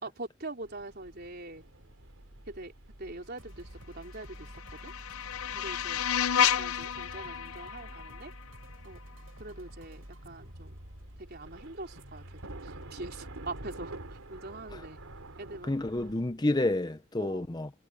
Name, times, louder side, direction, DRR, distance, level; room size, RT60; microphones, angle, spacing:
voice 1, 0.0-1.6 2.5-2.7 3.0-4.9 5.5-6.0 6.6-8.3 8.8-9.0 9.4-10.8 11.2-15.0 15.4-15.7 17.2-17.5, right 2 dB, 50° right, 4.3 m, -43 dB
sound 1, 0.6-16.1, right 2 dB, 90° right, 3.3 m, -50 dB
sound 2, 3.4-16.8, equal, 75° right, 6.6 m, -51 dB
sound 3, 4.1-9.1, left 9 dB, 90° left, 0.6 m, -31 dB
voice 2, 15.6-17.7, left 2 dB, 20° left, 0.6 m, -29 dB
head